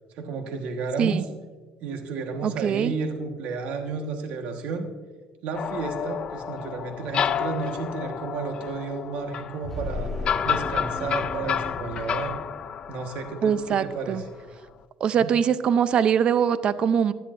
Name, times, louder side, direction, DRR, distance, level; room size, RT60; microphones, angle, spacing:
voice 1, 0.2-1.2 1.8-4.9 5.4-10.1 10.4-12.4 12.9-14.2 15.1-15.3, right 4 dB, 70° right, 4 dB, 1.4 m, -32 dB
voice 2, 2.4-2.9 13.4-14.2 15.0-17.1, right 8 dB, 45° right, 14 dB, 0.5 m, -22 dB
sound 1, 5.5-14.3, left 8 dB, 45° left, 0.4 m, -31 dB
sound 2, 9.6-13.1, left 2 dB, 5° left, 1.8 m, -35 dB
16.0 x 10.0 x 2.6 m, 1.3 s
cardioid pair, 115°, 2 cm